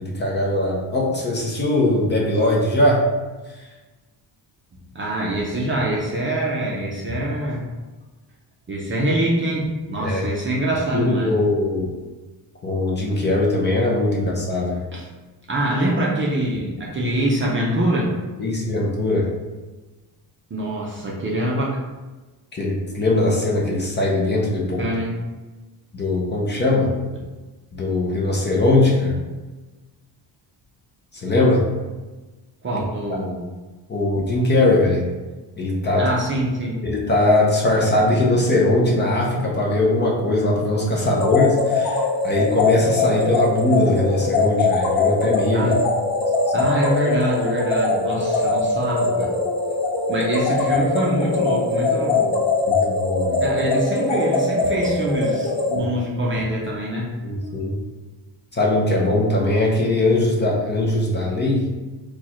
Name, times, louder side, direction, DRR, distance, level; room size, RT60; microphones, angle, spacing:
voice 1, 0.0-3.0 3.6-3.7 10.0-10.3 10.9-11.9 12.6-14.9 18.4-19.3 22.5-24.8 25.9-26.9 27.7-29.1 31.1-31.6 32.7-32.8 33.9-35.1 35.6-36.1 36.8-45.7 46.5-46.6 52.7-53.4 55.7-55.9 57.2-57.7 58.5-61.7, left 2 dB, 25° left, -3 dB, 0.7 m, -20 dB
voice 2, 4.7-7.7 8.7-11.4 14.9-15.1 15.5-18.1 20.5-21.8 24.8-25.1 32.6-33.4 36.0-36.8 40.9-41.1 45.5-45.8 46.5-49.3 50.1-52.4 53.4-57.1, right 1 dB, 25° right, -3 dB, 0.6 m, -24 dB
sound 1, 41.1-55.8, left 3 dB, 70° left, 1.0 m, -22 dB
4.5 x 2.4 x 4.2 m, 1.2 s
cardioid pair, 160°, 44 cm